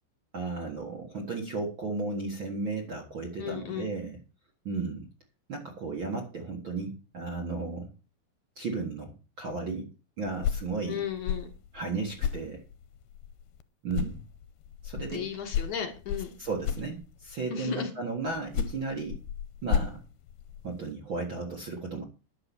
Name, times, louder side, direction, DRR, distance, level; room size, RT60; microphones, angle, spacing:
voice 1, 0.3-4.2 4.6-5.1 5.5-7.9 8.5-9.9 10.2-11.0 11.7-12.6 13.8-14.2 14.8-15.2 16.4-19.2 19.6-20.0 20.6-22.0, right 3 dB, 45° right, 2 dB, 1.8 m, -34 dB
voice 2, 3.4-3.9 10.9-11.5 15.1-16.3 17.5-17.9, left 8 dB, 60° left, 4 dB, 2.9 m, -34 dB
sound 1, 10.2-13.6 13.9-17.5 18.3-20.9, left 8 dB, 80° left, 2.5 m, -34 dB
10.5 x 6.9 x 7.1 m, 0.33 s
omnidirectional pair, 4.4 m